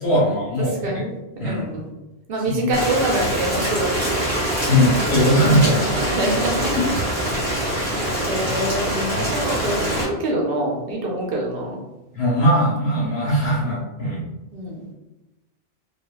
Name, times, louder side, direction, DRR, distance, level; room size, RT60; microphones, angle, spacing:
voice 1, 0.0-0.9 1.4-1.7 2.5-2.7 4.6-6.1 6.8-6.9 9.1-9.3 12.1-14.2, equal, 75° left, -6 dB, 1.3 m, -20 dB
voice 2, 0.6-1.9 2.3-4.2 5.9-6.8 7.9-11.8 14.5-14.9, right 1 dB, 65° right, -2 dB, 0.8 m, -26 dB
Rain, 2.7-10.0, right 1 dB, 30° right, 0.8 m, -24 dB
2.5 x 2.3 x 2.2 m, 1.0 s
omnidirectional pair, 1.1 m